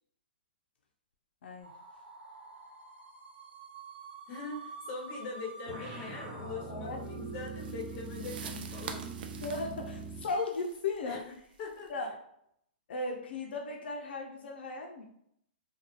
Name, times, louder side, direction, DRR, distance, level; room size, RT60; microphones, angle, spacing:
voice 1, 1.4-1.7 6.7-7.0 9.4-11.2 11.9-12.1 12.9-15.0, left 3 dB, 75° left, 1 dB, 0.4 m, -36 dB
sound 1, 1.6-8.6, right 3 dB, 75° right, 0.8 m, -49 dB
voice 2, 4.3-9.1 11.0-11.3 11.6-12.1, left 4 dB, 35° left, 0 dB, 0.7 m, -42 dB
sound 2, 5.7-10.4, right 3 dB, 45° right, 1.1 m, -42 dB
sound 3, 7.0-11.9, right 6 dB, 60° right, 0.3 m, -48 dB
2.3 x 2.2 x 2.9 m, 0.73 s
hypercardioid pair, 135°, 6 cm